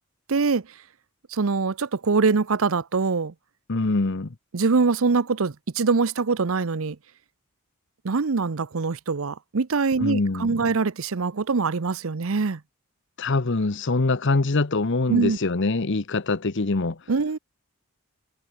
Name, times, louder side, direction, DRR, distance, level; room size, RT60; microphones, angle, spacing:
voice 1, 0.3-0.6 1.3-3.3 4.5-7.0 8.0-12.6 15.1-15.4 17.1-17.4, right 4 dB, 65° right, 0.7 m, -23 dB
voice 2, 3.7-4.3 10.0-10.6 13.2-17.0, left 3 dB, 55° left, 0.9 m, -24 dB
head